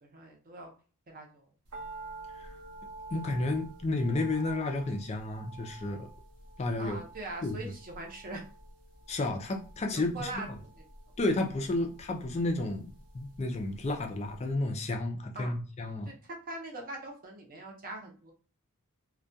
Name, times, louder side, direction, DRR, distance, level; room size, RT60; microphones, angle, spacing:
voice 1, 0.0-0.7 1.1-1.5 6.8-8.4 9.9-10.8 15.3-15.5 16.0-18.3, right 2 dB, 40° right, 1 dB, 0.6 m, -42 dB
sound 1, 1.7-14.0 14.3-14.4, right 2 dB, 80° right, 0.6 m, -48 dB
voice 2, 3.1-6.1 6.6-7.0 7.4-7.6 9.1-10.3 11.2-16.1, left 2 dB, 30° left, 4 dB, 0.3 m, -31 dB
2.2 x 2.2 x 2.6 m, 0.38 s
head